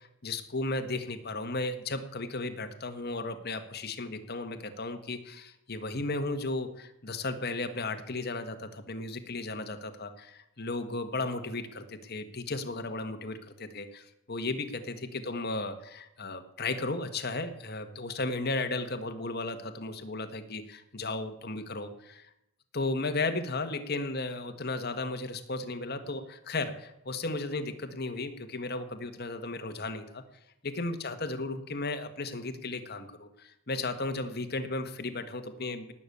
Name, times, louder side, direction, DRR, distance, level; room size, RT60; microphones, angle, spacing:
voice 1, 0.0-22.2 22.7-30.2 30.6-35.9, left 2 dB, 50° left, 7 dB, 1.5 m, -35 dB
18.5 x 7.0 x 8.5 m, 0.85 s
head